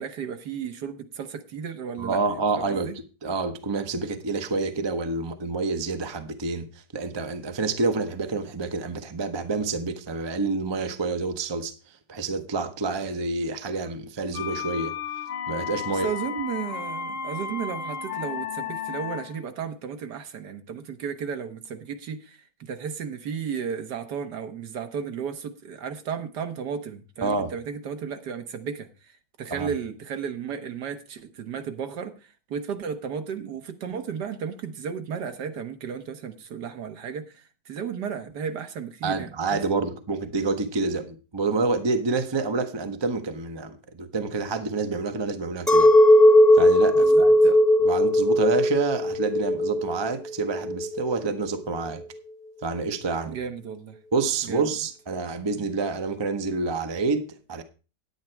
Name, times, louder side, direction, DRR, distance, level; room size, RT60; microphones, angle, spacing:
voice 1, 0.0-2.2 2.6-2.9 15.9-28.9 29.4-32.1 32.5-39.6 47.0-47.3 53.3-54.0 54.5-54.7, right 7 dB, 70° right, 1.6 m, -34 dB
voice 2, 2.0-14.9 15.5-16.1 27.2-27.5 29.5-29.7 39.0-45.9 46.5-52.0 52.6-53.4 54.1-57.6, right 3 dB, 25° right, 0.6 m, -28 dB
sound 1, 14.3-19.4, left 7 dB, 60° left, 0.5 m, -33 dB
Chink clink, 45.7-51.1, left 1 dB, ahead, 0.9 m, -18 dB
9.7 x 9.5 x 4.4 m
omnidirectional pair, 1.9 m